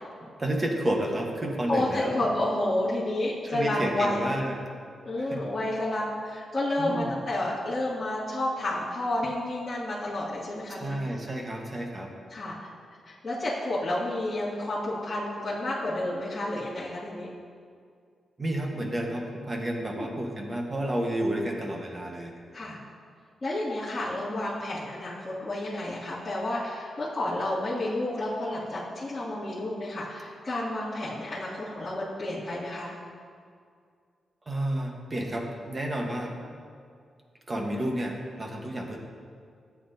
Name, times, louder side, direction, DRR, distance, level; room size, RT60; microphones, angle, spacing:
voice 1, 0.4-2.2 3.5-4.6 5.2-5.4 6.8-7.1 10.7-12.1 18.4-22.3 34.5-36.4 37.5-39.0, right 1 dB, 25° right, 1 dB, 1.3 m, -31 dB
voice 2, 1.7-4.3 5.0-10.9 12.3-12.5 13.1-17.3 19.9-20.1 22.5-22.8 23.4-32.9 37.6-37.8, left 1 dB, 20° left, -14 dB, 2.5 m, -30 dB
15.0 x 8.6 x 2.8 m, 2.2 s
wide cardioid pair, 145°, 0 cm